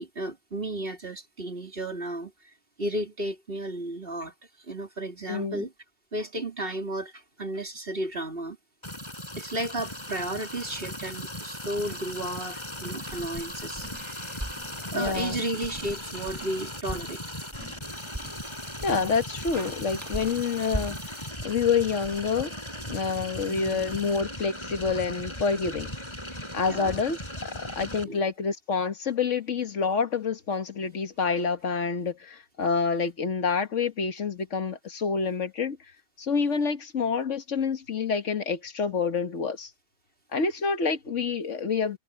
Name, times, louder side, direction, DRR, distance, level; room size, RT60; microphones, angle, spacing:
voice 1, 0.0-2.3 2.8-4.3 4.7-5.7 6.1-8.6 9.4-13.9 14.9-17.2 23.4-23.9 26.7-27.0 28.0-28.2, right 1 dB, 50° right, 4.1 m, -33 dB
voice 2, 5.3-5.6 14.9-15.4 18.8-22.5 22.9-25.9 26.5-35.8 36.2-39.7 40.3-42.0, left 5 dB, 85° left, 1.8 m, -28 dB
sound 1, 8.8-28.0, left 1 dB, 20° left, 7.3 m, -38 dB
sound 2, 13.0-22.9, right 1 dB, 15° right, 1.7 m, -41 dB
omnidirectional pair, 1.2 m